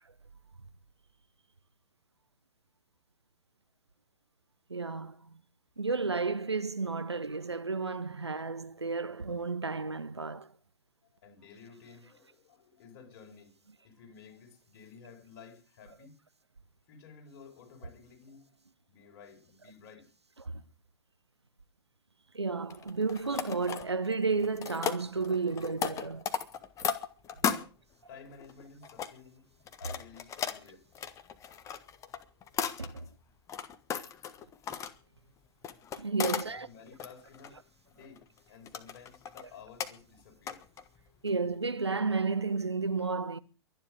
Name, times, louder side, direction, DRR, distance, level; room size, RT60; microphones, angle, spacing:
voice 1, 4.7-5.4 5.8-10.5 20.4-20.6 22.3-26.3 32.8-33.1 36.0-36.7 41.2-43.4, right 4 dB, 85° right, 0.9 m, -32 dB
voice 2, 11.1-16.1 16.9-18.6 18.9-20.1 27.4-27.7 28.1-29.5 29.8-30.8 36.1-37.6 37.9-40.7, left 6 dB, 45° left, 5.4 m, -53 dB
sound 1, 22.7-24.1 24.4-27.6 28.3-29.1 29.7-33.1 33.5-34.9 35.6-36.4 36.9-37.5 38.0-38.4 38.7-39.4 39.8-39.9 40.5-41.0 41.3-41.4, left 8 dB, 25° left, 1.4 m, -35 dB
23.5 x 10.0 x 5.1 m
figure-of-eight pair, 105°, 14 cm